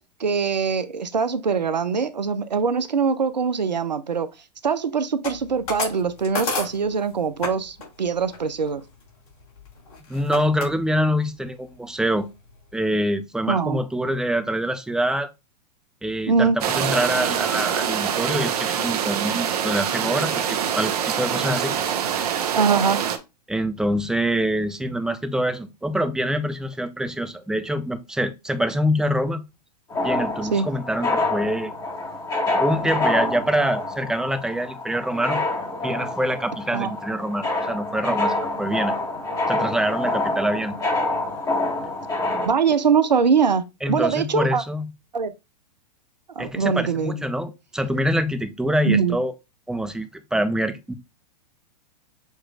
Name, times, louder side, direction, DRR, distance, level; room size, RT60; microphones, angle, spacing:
voice 1, 0.2-4.3 4.6-8.8 13.5-13.8 16.3-16.6 22.5-23.0 30.5-30.7 36.7-36.9 42.5-44.6 45.1-45.3 46.4-47.2 48.9-49.2, right 6 dB, 90° right, 0.5 m, -22 dB
sound 1, 5.2-7.5 7.8-8.0 8.3-10.7 11.2-11.6 12.0-12.1 12.3-12.9, left 3 dB, 60° left, 3.0 m, -31 dB
voice 2, 10.1-12.3 12.7-15.3 16.0-21.8 23.5-29.4 30.0-31.7 32.6-35.4 35.8-38.9 39.5-40.8 43.8-44.9 46.4-49.3 49.7-50.9, equal, 5° right, 0.5 m, -25 dB
sound 2, 16.6-23.2, right 8 dB, 65° right, 0.8 m, -25 dB
sound 3, 29.9-42.5, left 2 dB, 20° left, 1.6 m, -26 dB
6.6 x 3.0 x 2.3 m
figure-of-eight pair, 105°, 21 cm